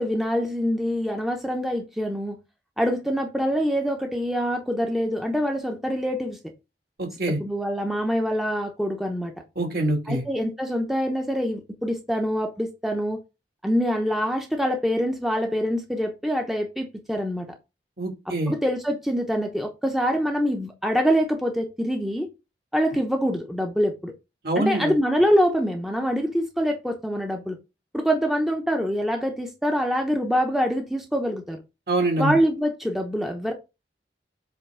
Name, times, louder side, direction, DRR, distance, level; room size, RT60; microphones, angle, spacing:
voice 1, 0.0-2.4 2.8-6.4 7.4-9.3 10.1-13.2 13.6-17.5 18.5-22.3 22.7-24.1 24.6-27.6 27.9-31.6 32.2-33.5, equal, ahead, 0.9 m, -25 dB
voice 2, 7.0-7.4 9.6-10.2 18.0-18.5 24.4-24.9 31.9-32.4, right 2 dB, 55° right, 2.5 m, -25 dB
8.0 x 3.5 x 4.9 m
head